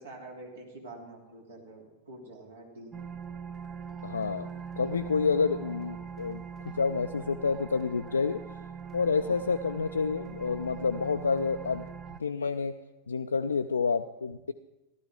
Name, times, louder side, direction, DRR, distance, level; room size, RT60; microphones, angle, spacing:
voice 1, 0.0-2.9 9.2-9.4, right 2 dB, 65° right, 0 dB, 3.0 m, -46 dB
sound 1, 2.9-12.2, right 6 dB, 25° right, 0.6 m, -42 dB
voice 2, 4.0-4.5 4.8-6.4 6.8-8.4 8.9-11.9 12.2-12.8 13.1-14.5, left 5 dB, 75° left, 7 dB, 0.4 m, -28 dB
15.5 x 12.0 x 3.7 m, 1.0 s
figure-of-eight pair, 90°, 0 cm